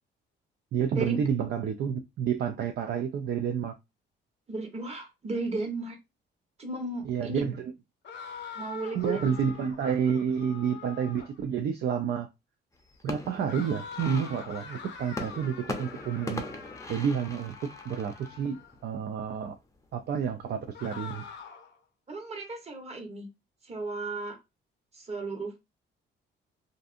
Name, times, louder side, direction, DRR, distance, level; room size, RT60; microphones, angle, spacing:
voice 1, 0.7-3.8 7.1-7.7 9.0-12.3 13.0-16.4 16.9-17.5 17.8-19.5 19.9-21.2, right 7 dB, 55° right, 0.4 m, -29 dB
voice 2, 4.5-6.0 6.6-7.5 8.5-9.3 22.1-23.3 23.6-24.4 24.9-25.6, right 2 dB, 30° right, 1.0 m, -35 dB
sound 1, 8.0-11.4 13.5-18.8 20.7-21.8, left 6 dB, 60° left, 0.7 m, -44 dB
sound 2, 12.7-19.3 19.7-20.3 20.7-21.3, left 2 dB, 15° left, 0.6 m, -41 dB
2.6 x 2.5 x 2.4 m
cardioid pair, 90°, 20 cm